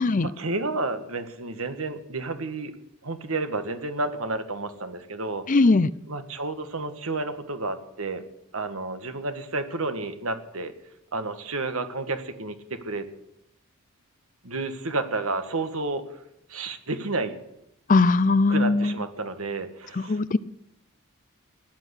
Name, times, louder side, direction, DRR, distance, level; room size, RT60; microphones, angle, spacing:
voice 1, 0.2-2.7 3.0-5.4 6.1-8.2 8.5-10.7 11.1-13.1 14.4-16.0 16.5-17.4 18.5-20.2, right 3 dB, 70° right, 8 dB, 1.6 m, -31 dB
voice 2, 5.5-5.9 17.9-18.9 20.1-20.4, left 3 dB, 35° left, 16 dB, 0.5 m, -19 dB
16.5 x 10.5 x 8.3 m, 0.82 s
head